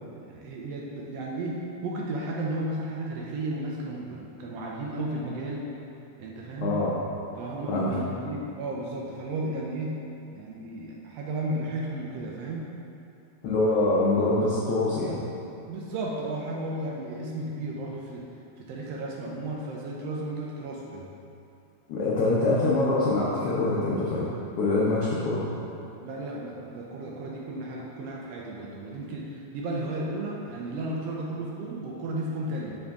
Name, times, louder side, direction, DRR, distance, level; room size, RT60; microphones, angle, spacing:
voice 1, 0.1-5.6 6.2-6.8 7.4-9.9 10.3-12.7 15.7-18.3 18.6-21.1 25.8-32.8, right 1 dB, 90° right, -3 dB, 1.4 m, -34 dB
voice 2, 6.6-6.9 7.7-7.9 13.4-15.2 21.9-24.3 24.6-25.4, left 2 dB, 85° left, -6 dB, 1.3 m, -24 dB
6.4 x 4.9 x 3.5 m, 2.7 s
omnidirectional pair, 3.6 m